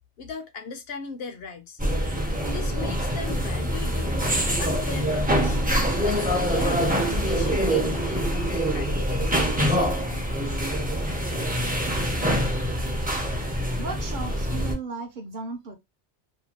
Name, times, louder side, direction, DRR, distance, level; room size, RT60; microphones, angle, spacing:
voice 1, 0.2-1.8 2.5-4.2 4.5-5.6 6.0-10.1, left 4 dB, 65° left, 0.8 m, -39 dB
sound 1, 1.8-14.7, equal, 15° right, 0.3 m, -25 dB
voice 2, 13.8-15.8, right 4 dB, 55° right, 0.6 m, -35 dB
2.7 x 2.2 x 2.8 m
omnidirectional pair, 1.2 m